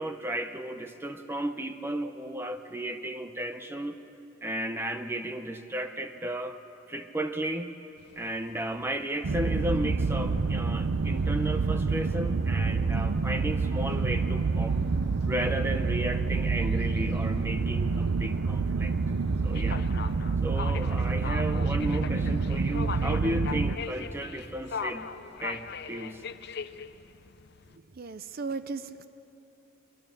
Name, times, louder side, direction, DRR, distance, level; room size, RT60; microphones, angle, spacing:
voice 1, 0.0-4.0 4.4-6.6 6.9-7.8 8.2-14.8 15.3-19.0 19.4-19.8 20.4-25.1 25.4-26.2, right 1 dB, 10° right, 7 dB, 0.7 m, -34 dB
sound 1, 8.0-27.8, left 6 dB, 55° left, 0.6 m, -43 dB
sound 2, 9.2-23.8, right 4 dB, 85° right, 0.6 m, -27 dB
voice 2, 28.0-29.1, right 4 dB, 45° right, 12 dB, 0.6 m, -36 dB
24.0 x 23.0 x 6.7 m, 3.0 s
head